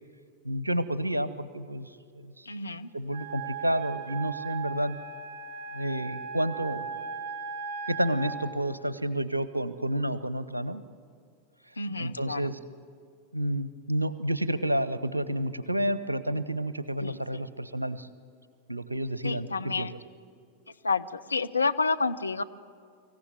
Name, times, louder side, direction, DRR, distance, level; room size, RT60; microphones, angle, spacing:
voice 1, 0.4-2.5 2.9-5.0 5.7-7.1 7.9-10.8 12.0-12.6 13.3-18.1 18.7-19.9, right 1 dB, 85° right, 14 dB, 0.8 m, -30 dB
voice 2, 2.5-2.9 11.8-12.5 17.0-17.4 19.2-20.0 20.8-22.4, left 4 dB, 80° left, 9 dB, 0.7 m, -30 dB
Wind instrument woodwind instrument, 3.1-8.5, right 5 dB, 55° right, 2.7 m, -37 dB
24.0 x 15.5 x 9.6 m, 2.2 s
figure-of-eight pair, 90°, 0 cm